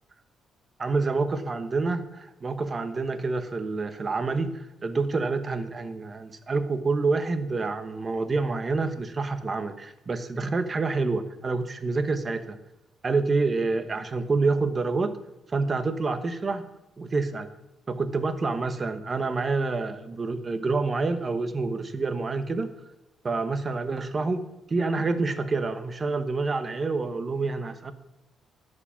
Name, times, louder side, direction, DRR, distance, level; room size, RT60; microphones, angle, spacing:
voice 1, 0.8-12.6 13.0-15.2 15.5-16.6 17.0-17.5 17.9-22.7 23.2-24.4 24.7-27.9, right 3 dB, 35° right, 10 dB, 1.0 m, -27 dB
11.5 x 4.9 x 7.3 m, 0.92 s
cardioid pair, 90°, 0 cm